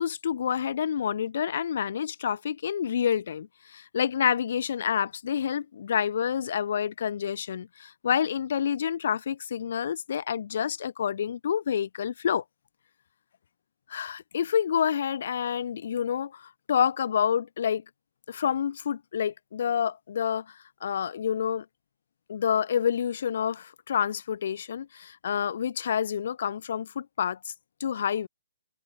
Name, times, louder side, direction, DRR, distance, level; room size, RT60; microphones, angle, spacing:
voice 1, 0.0-12.4 13.9-17.8 18.3-20.5 20.8-21.6 22.3-27.4 27.8-28.3, left 8 dB, 45° left, 2.3 m, -28 dB
hypercardioid pair, 175°, 0 cm